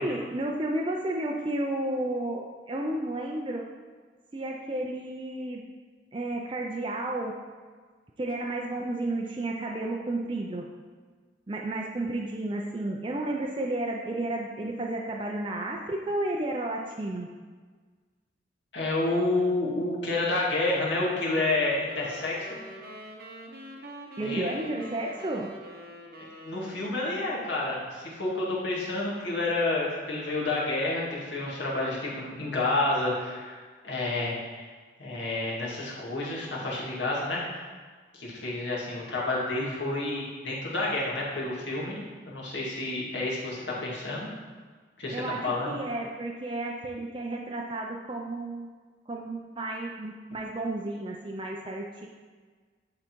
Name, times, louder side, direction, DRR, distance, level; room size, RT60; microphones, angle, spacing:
voice 1, 0.0-3.6 4.3-5.6 6.1-7.4 8.2-10.7 11.5-17.3 24.2-25.5 45.1-48.7 49.1-52.1, right 1 dB, 25° right, -1 dB, 0.5 m, -32 dB
voice 2, 18.7-22.6 24.2-24.5 26.4-33.6 33.8-34.7 35.0-37.6 38.1-44.3 45.0-45.8, left 2 dB, 70° left, -5 dB, 2.1 m, -29 dB
sound 1, 20.7-27.7, equal, 50° right, 0.8 m, -45 dB
10.5 x 3.8 x 4.5 m, 1.5 s
head